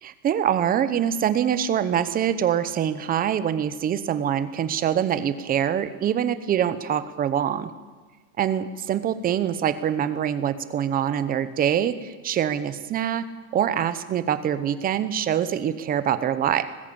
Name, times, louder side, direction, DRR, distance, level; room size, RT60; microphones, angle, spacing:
voice 1, 0.0-7.7 8.4-13.2 13.5-16.6, right 9 dB, 20° right, 13 dB, 0.8 m, -24 dB
20.0 x 15.0 x 8.6 m, 1.3 s
supercardioid pair, 155°, 45 cm